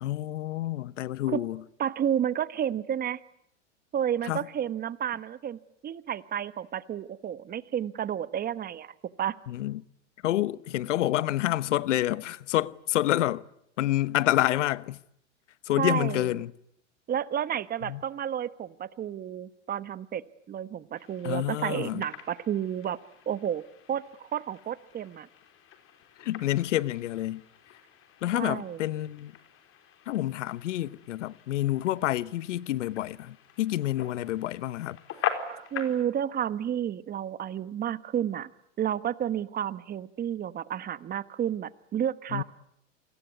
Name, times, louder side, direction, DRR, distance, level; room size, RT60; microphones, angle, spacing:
voice 1, 0.0-1.6 4.2-4.4 9.5-9.8 10.2-13.4 13.8-15.0 15.6-16.5 17.9-18.0 21.2-22.1 26.2-27.4 28.2-29.3 30.1-35.0 42.3-42.4, left 14 dB, 75° left, 1.0 m, -28 dB
voice 2, 1.8-3.2 3.9-9.4 15.8-16.3 17.1-20.2 20.5-23.0 23.3-23.6 23.9-25.3 28.3-28.8 35.5-38.5 38.8-42.4, right 9 dB, 25° right, 1.1 m, -31 dB
sound 1, 20.9-36.0, left 9 dB, 35° left, 4.2 m, -42 dB
28.0 x 21.0 x 9.5 m
hypercardioid pair, 110°, 37 cm